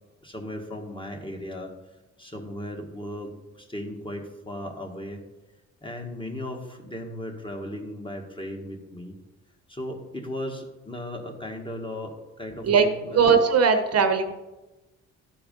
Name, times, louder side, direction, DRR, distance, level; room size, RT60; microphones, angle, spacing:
voice 1, 0.2-1.7 2.2-5.2 5.8-9.2 9.7-13.2, left 1 dB, 15° left, 2 dB, 1.6 m, -36 dB
voice 2, 13.1-14.3, right 6 dB, 55° right, 7 dB, 1.0 m, -19 dB
12.5 x 4.7 x 5.2 m, 1.1 s
cardioid pair, 90°, 30 cm